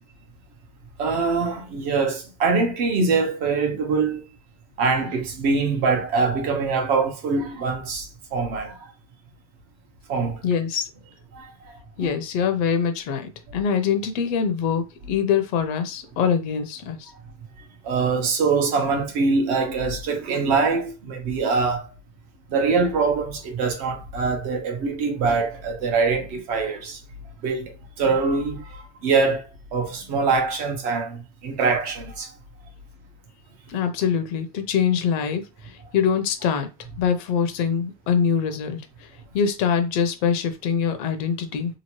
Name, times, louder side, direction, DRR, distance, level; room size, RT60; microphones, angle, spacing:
voice 1, 1.0-4.2 4.8-8.8 10.1-10.4 11.3-11.5 12.0-12.1 17.8-21.8 22.5-27.0 27.4-29.4 29.7-32.3, right 4 dB, 45° right, 0.9 m, -23 dB
voice 2, 10.4-10.9 12.0-17.1 33.7-36.7 37.0-39.1 39.3-41.8, left 7 dB, 50° left, 0.6 m, -24 dB
2.9 x 2.5 x 3.0 m
supercardioid pair, 155°, 19 cm